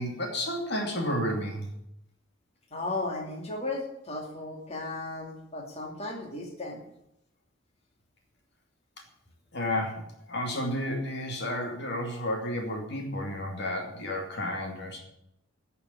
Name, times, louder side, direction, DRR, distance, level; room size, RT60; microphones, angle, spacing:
voice 1, 0.0-1.7 9.5-10.0 10.3-15.0, left 1 dB, 55° left, 2 dB, 2.6 m, -31 dB
voice 2, 2.7-6.8, left 2 dB, 30° left, 0 dB, 2.6 m, -35 dB
12.5 x 6.9 x 9.8 m, 0.77 s
head